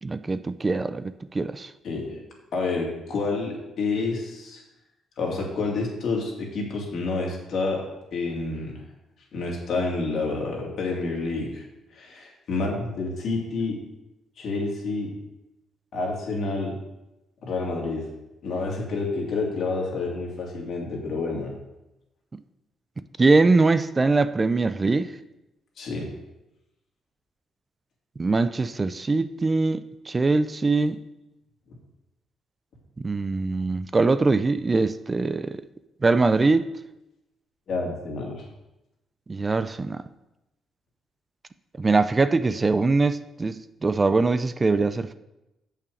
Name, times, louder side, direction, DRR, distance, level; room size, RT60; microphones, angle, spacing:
voice 1, 0.0-1.7 22.3-22.4 23.2-25.1 28.2-31.0 33.0-35.6 36.0-36.6 39.3-40.0 41.8-45.1, right 3 dB, 25° right, 0.4 m, -22 dB
voice 2, 1.8-2.2 2.5-4.6 5.2-7.8 8.1-8.8 9.3-11.6 11.9-13.8 14.4-15.1 15.9-16.8 17.4-18.1 18.4-21.5 25.8-26.1 37.7-38.4, left 3 dB, 65° left, 2.4 m, -29 dB
6.8 x 5.8 x 6.4 m
cardioid pair, 90°, 0 cm